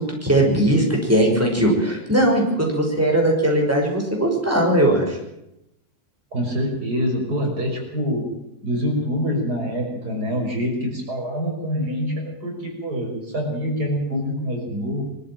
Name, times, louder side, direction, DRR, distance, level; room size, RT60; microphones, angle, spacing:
voice 1, 0.0-5.2, right 1 dB, 10° right, 0 dB, 5.8 m, -19 dB
voice 2, 6.3-8.3 8.6-15.0, equal, 85° right, 1 dB, 6.3 m, -25 dB
23.5 x 13.0 x 9.0 m, 0.86 s
omnidirectional pair, 1.7 m